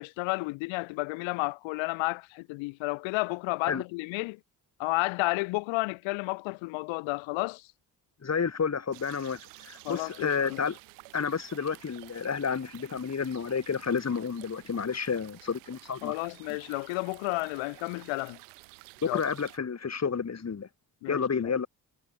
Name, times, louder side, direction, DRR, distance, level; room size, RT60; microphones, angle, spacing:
voice 1, 0.0-4.4 4.8-7.7 9.8-10.6 16.0-18.4 19.0-19.2 21.0-21.5, left 25 dB, 80° left, 1.6 m, -32 dB
voice 2, 8.2-10.8 11.1-16.1 19.0-20.7 21.1-21.7, left 6 dB, 35° left, 2.5 m, -30 dB
sound 1, 8.9-19.6, right 32 dB, 85° right, 2.9 m, -52 dB
hypercardioid pair, 50°, 46 cm